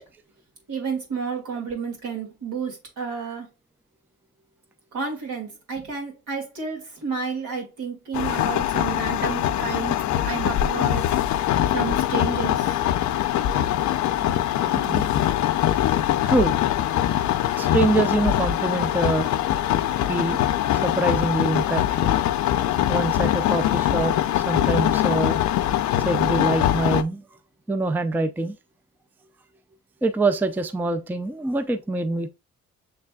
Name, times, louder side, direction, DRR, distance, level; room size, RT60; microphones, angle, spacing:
voice 1, 0.7-3.5 4.9-11.1 11.7-12.8 13.7-13.8 14.2-15.2, right 5 dB, 80° right, 2.2 m, -31 dB
sound 1, 8.1-27.0, left 12 dB, 70° left, 0.5 m, -22 dB
voice 2, 16.2-16.6 17.6-19.3 20.1-20.4 20.8-22.1 22.9-25.4 26.0-27.2 27.7-28.5 30.0-32.3, right 2 dB, 5° right, 0.4 m, -24 dB
6.5 x 3.3 x 2.3 m
cardioid pair, 90°, 30 cm